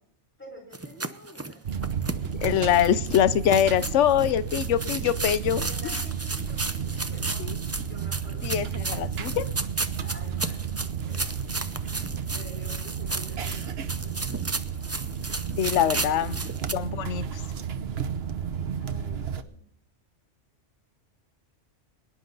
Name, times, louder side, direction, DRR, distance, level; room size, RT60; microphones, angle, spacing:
voice 1, 0.4-1.6 5.5-9.0 10.0-11.3 11.5-11.7 12.3-15.0 15.6-16.3 18.8-19.6, equal, 10° left, 0 dB, 5.1 m, -49 dB
sound 1, 0.7-16.7, right 2 dB, 20° right, 0.5 m, -34 dB
sound 2, 1.6-19.4, right 7 dB, 60° right, 1.1 m, -32 dB
voice 2, 2.4-5.6 7.4-7.5 8.4-9.5 15.6-16.4 16.7-17.2, left 10 dB, 80° left, 15 dB, 1.0 m, -23 dB
23.0 x 10.5 x 4.0 m, 0.63 s
omnidirectional pair, 1.2 m